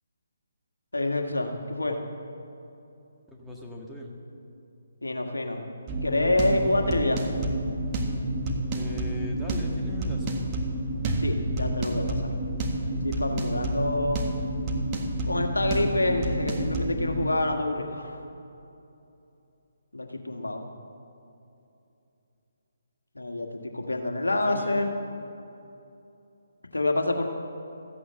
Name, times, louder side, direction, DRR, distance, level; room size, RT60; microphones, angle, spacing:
voice 1, 0.9-2.0 5.0-5.6 6.0-7.2 11.2-12.3 13.0-14.3 15.2-18.2 19.9-20.7 23.1-24.9 26.7-27.3, left 2 dB, 85° left, 3 dB, 1.7 m, -27 dB
voice 2, 3.3-4.2 8.7-10.4 24.3-24.9, equal, ahead, -4 dB, 1.6 m, -39 dB
sound 1, 5.9-17.2, right 1 dB, 25° right, 1.6 m, -29 dB
14.5 x 8.6 x 7.7 m, 2.7 s
figure-of-eight pair, 145°, 0 cm